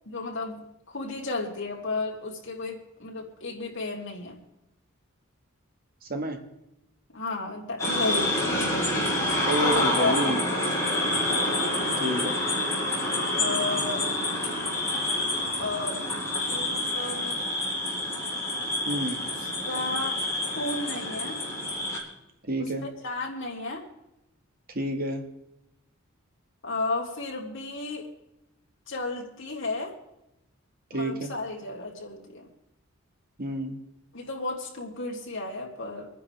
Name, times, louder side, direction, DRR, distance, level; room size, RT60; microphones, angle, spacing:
voice 1, 0.1-0.6 0.9-4.4 7.1-8.3 8.6-9.0 9.6-10.6 10.9-11.1 13.3-14.1 15.6-16.0 16.5-17.4 19.6-20.2 20.5-21.4 23.0-23.8 26.6-28.1 28.9-29.9 30.9-32.5 34.1-36.1, left 2 dB, 60° left, -1 dB, 3.1 m, -33 dB
sound 1, 7.8-22.0, left 1 dB, 15° left, 4.1 m, -28 dB
voice 2, 9.4-10.5 12.0-12.3 18.8-19.2 22.5-22.8 24.7-25.2 30.9-31.3 33.4-33.8, right 1 dB, 45° right, 4 dB, 1.7 m, -29 dB
26.5 x 10.0 x 3.5 m, 0.88 s
head